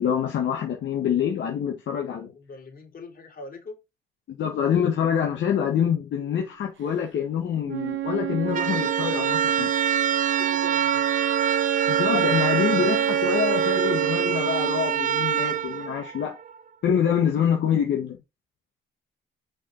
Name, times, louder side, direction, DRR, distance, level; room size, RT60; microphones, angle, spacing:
voice 1, 0.0-2.3 4.3-9.7 11.9-16.4 16.8-18.2, left 8 dB, 65° left, 1.6 m, -25 dB
voice 2, 2.4-3.8 10.4-11.2, left 3 dB, 45° left, 4.0 m, -42 dB
Wind instrument woodwind instrument, 7.7-15.7, right 9 dB, 75° right, 1.0 m, -28 dB
sound 1, 8.4-16.6, right 9 dB, 40° right, 0.5 m, -26 dB
6.0 x 5.3 x 4.0 m
cardioid pair, 90°, 20 cm